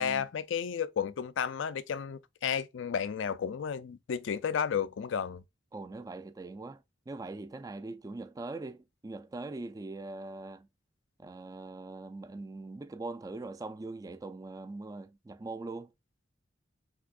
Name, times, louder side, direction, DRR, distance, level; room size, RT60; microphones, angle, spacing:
voice 1, 0.0-5.4, left 7 dB, 75° left, 0.4 m, -32 dB
voice 2, 5.7-10.7 11.2-15.9, right 2 dB, 20° right, 0.3 m, -42 dB
5.9 x 3.0 x 2.4 m
head